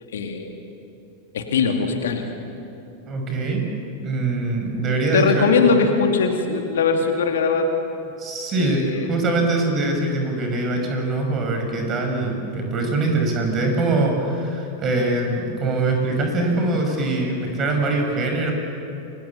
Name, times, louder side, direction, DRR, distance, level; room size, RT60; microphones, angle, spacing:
voice 1, 0.1-0.5 1.3-2.3 5.1-7.7 8.6-9.1, left 5 dB, 60° left, 4 dB, 2.4 m, -20 dB
voice 2, 3.1-3.6 4.0-5.5 8.2-18.5, right 2 dB, 30° right, 3 dB, 6.4 m, -23 dB
29.0 x 22.5 x 7.3 m, 2.8 s
figure-of-eight pair, 90°, 0 cm